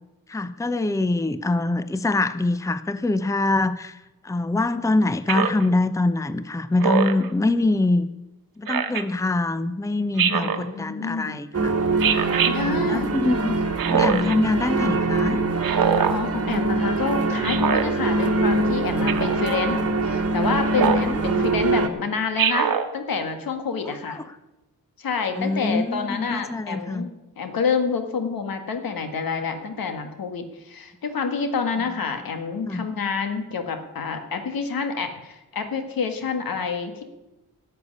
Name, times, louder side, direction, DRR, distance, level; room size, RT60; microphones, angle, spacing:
voice 1, 0.3-4.0 4.2-8.1 8.6-11.7 12.6-13.6 13.9-15.4 21.0-21.2 23.8-24.3 25.4-27.0 32.7-32.8, left 2 dB, 10° left, 13 dB, 0.7 m, -24 dB
Speech synthesizer, 5.3-5.7 6.8-7.3 8.7-9.0 10.2-10.6 12.0-12.5 13.8-14.4 15.6-16.2 17.4-17.9 19.1-19.4 20.7-21.1 22.4-22.9, right 7 dB, 75° right, 1.1 m, -22 dB
voice 2, 10.2-11.4 12.5-13.1 15.8-24.2 25.0-37.0, left 5 dB, 80° left, 7 dB, 1.8 m, -28 dB
sound 1, 11.5-21.9, right 2 dB, 45° right, 1.6 m, -23 dB
13.5 x 6.7 x 9.7 m, 0.99 s
cardioid pair, 85°, 34 cm